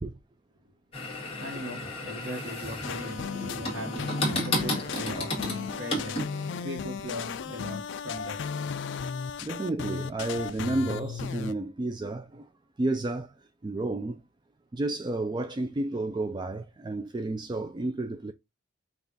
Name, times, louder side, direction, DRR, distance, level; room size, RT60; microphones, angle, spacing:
sound 1, 0.9-6.7, left 1 dB, 30° left, 1.8 m, -33 dB
voice 1, 1.4-8.4, equal, 85° right, 1.4 m, -39 dB
sound 2, 2.8-11.5, left 6 dB, 60° left, 0.3 m, -35 dB
voice 2, 9.4-12.4 12.8-13.3 13.6-14.2 14.7-18.3, right 2 dB, 20° right, 0.3 m, -31 dB
5.6 x 2.4 x 3.8 m
head